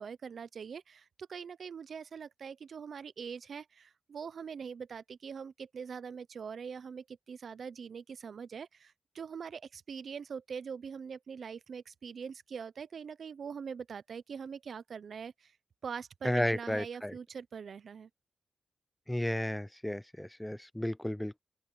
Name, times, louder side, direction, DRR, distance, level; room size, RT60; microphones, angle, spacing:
voice 1, 0.0-15.5 15.8-18.1, right 6 dB, 60° right, 0.5 m, -43 dB
voice 2, 16.2-17.1 19.1-21.4, left 1 dB, 5° left, 0.5 m, -33 dB
open air
wide cardioid pair, 155°, 0 cm